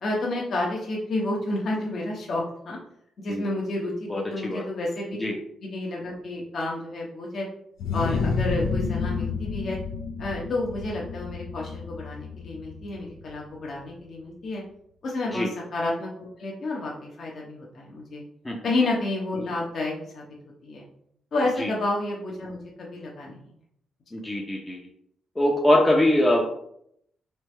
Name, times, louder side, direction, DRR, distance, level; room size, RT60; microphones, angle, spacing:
voice 1, 0.0-2.8 3.2-5.2 5.6-7.5 7.9-9.8 10.2-14.6 15.0-16.1 16.4-18.2 18.6-20.2 20.6-20.8 21.3-23.4, left 2 dB, 50° left, -3 dB, 0.9 m, -30 dB
voice 2, 4.1-4.6 5.2-5.3 8.1-8.2 15.3-15.5 18.4-18.6 21.6-21.7 24.1-24.8 25.4-26.4, left 1 dB, 15° left, -2 dB, 0.6 m, -22 dB
sound 1, 7.8-13.3, left 5 dB, 85° left, 0.4 m, -30 dB
4.2 x 3.3 x 3.2 m, 0.72 s
cardioid pair, 115°, 0 cm